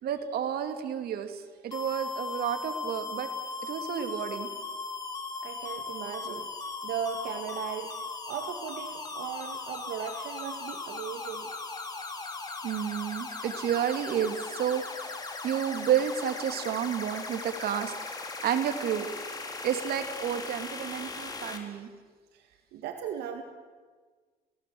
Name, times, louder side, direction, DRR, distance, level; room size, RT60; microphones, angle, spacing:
voice 1, 0.0-3.3 3.6-4.5 12.6-14.8 15.4-17.9 18.4-19.1 19.6-21.9, right 9 dB, 65° right, 7 dB, 2.7 m, -30 dB
sound 1, 1.7-21.6, left 3 dB, 25° left, 3.9 m, -38 dB
voice 2, 5.4-6.5 6.8-7.9 8.3-11.5 15.0-15.2 22.3-23.4, right 8 dB, 80° right, 5 dB, 1.9 m, -37 dB
29.5 x 18.0 x 7.9 m, 1.5 s
cardioid pair, 110°, 17 cm